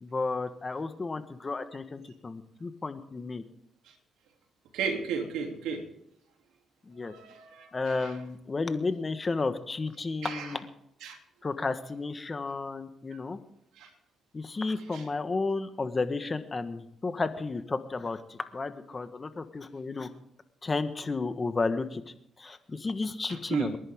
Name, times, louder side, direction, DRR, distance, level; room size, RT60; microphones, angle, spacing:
voice 1, 0.0-3.4 6.9-7.1 7.7-10.7 11.4-13.4 14.3-20.1 20.6-22.0 22.4-23.8, left 3 dB, 30° left, 9 dB, 1.4 m, -32 dB
voice 2, 4.7-5.8 7.0-8.1 10.2-10.5 11.0-11.2 13.8-13.9 14.9-15.0 23.3-23.7, right 6 dB, 90° right, 3 dB, 2.9 m, -34 dB
28.5 x 11.0 x 3.7 m, 0.78 s
cardioid pair, 90°, 0 cm